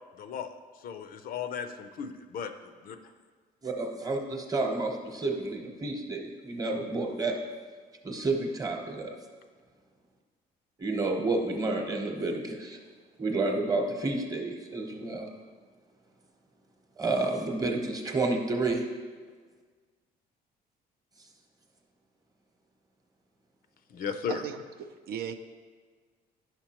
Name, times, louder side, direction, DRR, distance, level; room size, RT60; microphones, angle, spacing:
voice 1, 0.2-0.5 0.8-2.5 2.8-3.0 23.9-24.4, left 7 dB, 60° left, 8 dB, 0.5 m, -35 dB
voice 2, 3.6-7.4 8.0-9.1 10.8-12.8 13.2-15.3 17.0-18.8, right 2 dB, 20° right, 2 dB, 1.0 m, -30 dB
voice 3, 24.3-25.3, right 8 dB, 65° right, 5 dB, 0.5 m, -37 dB
9.5 x 5.9 x 2.9 m, 1.5 s
cardioid pair, 110°, 17 cm